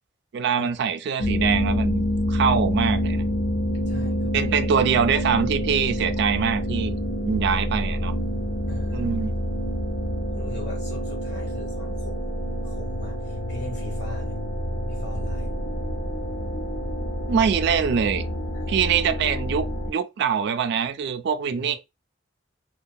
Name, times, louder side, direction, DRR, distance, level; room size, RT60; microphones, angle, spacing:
voice 1, 0.3-3.2 4.3-8.1 8.9-9.3 17.3-18.2 18.7-21.8, right 7 dB, 65° right, 0.3 m, -24 dB
sound 1, 1.2-19.9, equal, 85° left, 0.6 m, -27 dB
voice 2, 3.9-4.6 8.7-9.1 10.3-12.3 12.6-14.4 14.9-15.6 17.6-17.8 18.5-18.9 21.5-21.8, left 2 dB, 65° left, 1.1 m, -41 dB
2.6 x 2.2 x 2.2 m
head